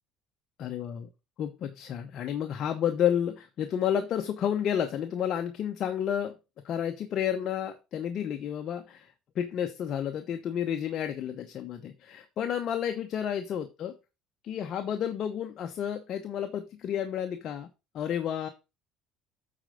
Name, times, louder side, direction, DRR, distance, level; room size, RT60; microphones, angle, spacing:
voice 1, 0.6-1.1 1.4-6.3 6.6-14.0 14.4-17.7 17.9-18.5, left 9 dB, 50° left, 6 dB, 0.9 m, -31 dB
8.8 x 4.3 x 5.1 m, 0.28 s
cardioid pair, 110°, 0 cm